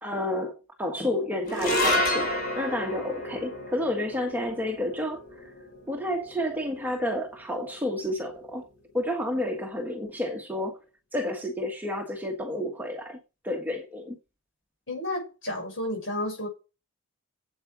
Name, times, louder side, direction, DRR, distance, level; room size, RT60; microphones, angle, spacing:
voice 1, 0.0-5.2 5.9-8.7 8.9-10.8 11.1-13.2 13.4-14.2, left 1 dB, 10° right, 1.3 m, -30 dB
sound 1, 1.5-7.9, left 1 dB, 40° left, 6.3 m, -31 dB
voice 2, 14.9-16.5, left 1 dB, 55° left, 6.5 m, -31 dB
8.6 x 8.2 x 6.0 m
head